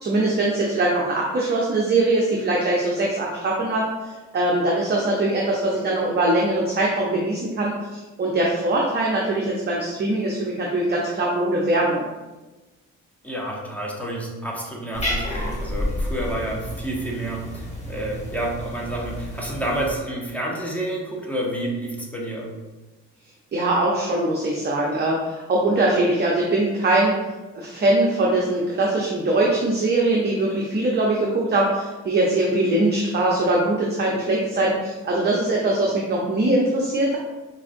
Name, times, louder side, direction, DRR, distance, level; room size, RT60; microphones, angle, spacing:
voice 1, 0.0-3.9 4.3-12.0 23.5-27.1 27.5-37.2, right 2 dB, 35° right, -3 dB, 0.6 m, -22 dB
voice 2, 13.2-22.5, right 1 dB, 5° left, -3 dB, 0.8 m, -29 dB
Cat, 14.9-20.0, equal, 20° left, 1.4 m, -30 dB
4.7 x 2.5 x 2.5 m, 1.2 s
cardioid pair, 90°, 30 cm